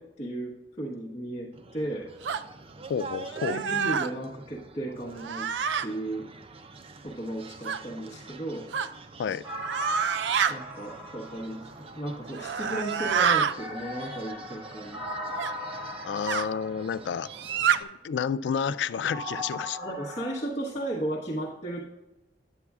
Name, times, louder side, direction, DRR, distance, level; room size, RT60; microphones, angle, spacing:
voice 1, 0.0-2.1 3.4-5.5 5.8-6.3 7.0-8.7 10.5-15.0 19.7-21.8, right 1 dB, 40° left, -4 dB, 1.1 m, -35 dB
sound 1, 1.5-17.8, right 3 dB, 35° right, 0.5 m, -47 dB
sound 2, 2.2-2.4 3.3-4.1 5.2-5.9 7.6-7.8 8.7-8.9 9.6-10.5 12.3-13.5 15.4-15.5 16.3-16.5 17.3-17.8, right 7 dB, 85° right, 0.4 m, -27 dB
voice 2, 2.9-3.6 9.2-9.5 16.0-17.3 17.8-19.8, left 7 dB, 85° left, 16 dB, 0.3 m, -30 dB
sound 3, 9.4-12.3 13.5-17.4 19.0-20.4, equal, 15° right, 1.4 m, -39 dB
10.0 x 8.3 x 2.4 m, 0.99 s
head